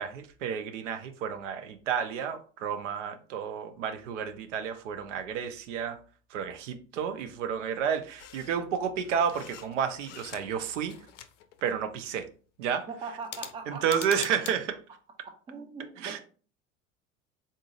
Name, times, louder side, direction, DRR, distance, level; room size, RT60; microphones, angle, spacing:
voice 1, 0.0-6.0 6.3-10.9 11.6-12.3 12.6-12.9 13.7-14.8 16.0-16.2, right 7 dB, 60° right, 0.6 m, -31 dB
sound 1, 8.2-8.6 9.0-10.6 10.9-11.8 13.2-14.6, left 10 dB, 60° left, 0.6 m, -44 dB
voice 2, 12.9-14.2 15.2-16.2, right 4 dB, 15° right, 0.5 m, -41 dB
3.8 x 3.7 x 2.4 m
figure-of-eight pair, 75°, 41 cm